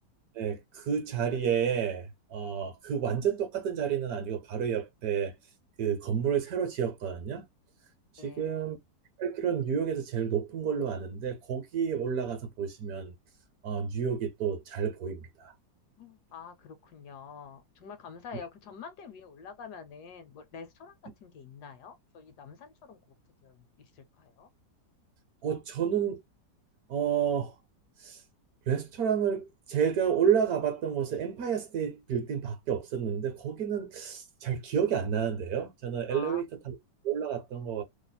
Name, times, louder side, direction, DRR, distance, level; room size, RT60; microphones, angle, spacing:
voice 1, 0.4-5.3 5.8-7.5 8.1-8.8 9.2-13.1 13.6-15.5 25.4-26.2 26.9-27.5 28.0-28.2 28.7-36.8 37.0-37.8, right 8 dB, 65° right, 1.1 m, -30 dB
voice 2, 8.2-8.7 16.0-20.9 21.2-23.0 23.4-24.5 36.1-36.7, left 6 dB, 70° left, 1.2 m, -47 dB
3.1 x 2.0 x 4.0 m
omnidirectional pair, 1.9 m